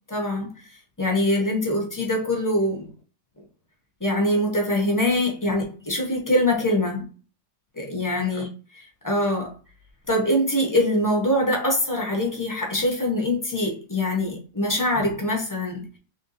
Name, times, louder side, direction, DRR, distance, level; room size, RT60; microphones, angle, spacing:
voice 1, 0.1-0.7 1.0-2.9 3.4-3.5 4.0-7.0 7.7-8.5 9.0-9.5 10.1-15.9, left 1 dB, 20° left, 0.6 m, -23 dB
3.3 x 2.6 x 4.0 m
omnidirectional pair, 1.9 m